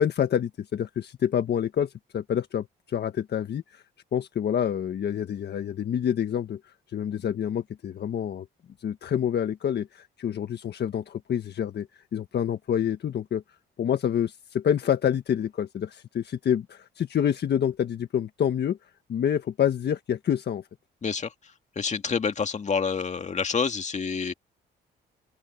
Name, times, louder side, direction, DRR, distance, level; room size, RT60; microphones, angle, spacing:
voice 1, 0.0-3.8 4.1-8.5 8.8-11.9 12.1-13.4 13.8-18.8 19.1-20.6, left 9 dB, 60° left, 1.5 m, -27 dB
voice 2, 21.0-21.3 21.8-24.3, left 5 dB, 35° left, 2.1 m, -27 dB
open air
cardioid pair, 90°, 20 cm